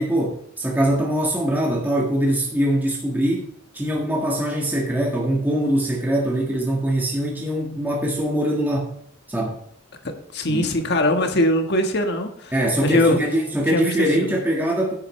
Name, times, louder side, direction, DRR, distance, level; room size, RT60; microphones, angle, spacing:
voice 1, 0.0-8.9 9.3-9.6 10.5-10.7 12.5-14.9, right 1 dB, 10° right, -3 dB, 1.7 m, -22 dB
voice 2, 10.3-12.5 12.8-13.2 13.7-14.1, left 1 dB, 55° left, 5 dB, 1.5 m, -21 dB
10.0 x 9.5 x 3.2 m, 0.69 s
head